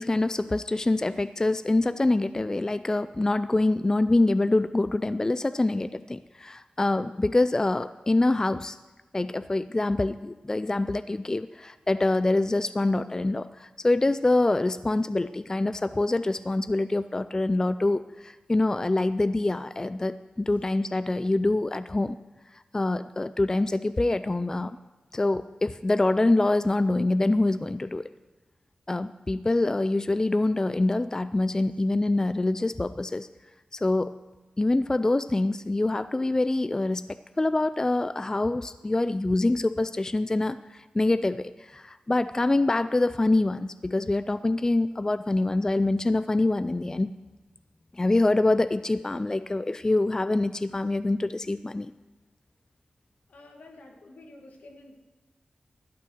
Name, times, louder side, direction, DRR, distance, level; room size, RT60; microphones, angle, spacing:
voice 1, 0.0-8.8 9.1-22.2 22.7-24.8 25.1-28.0 28.9-33.3 33.7-34.1 34.6-47.1 47.9-51.9, left 2 dB, 25° left, 12 dB, 0.3 m, -25 dB
voice 2, 53.3-55.0, left 2 dB, 80° left, 2 dB, 1.9 m, -49 dB
12.5 x 8.6 x 6.3 m, 1.2 s
wide cardioid pair, 75°, 3 cm